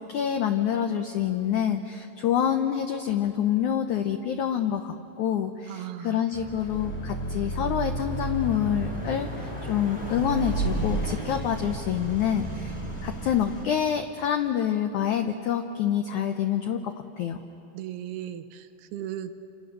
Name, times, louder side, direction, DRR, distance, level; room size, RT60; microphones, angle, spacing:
voice 1, 0.0-17.4, left 9 dB, 85° left, 6 dB, 1.7 m, -27 dB
voice 2, 5.7-6.2 17.7-19.3, right 11 dB, 80° right, 9 dB, 2.7 m, -36 dB
Car passing by / Accelerating revving vroom, 6.3-13.6, right 1 dB, 5° left, 3.6 m, -32 dB
29.5 x 27.0 x 6.8 m, 2.9 s
omnidirectional pair, 4.7 m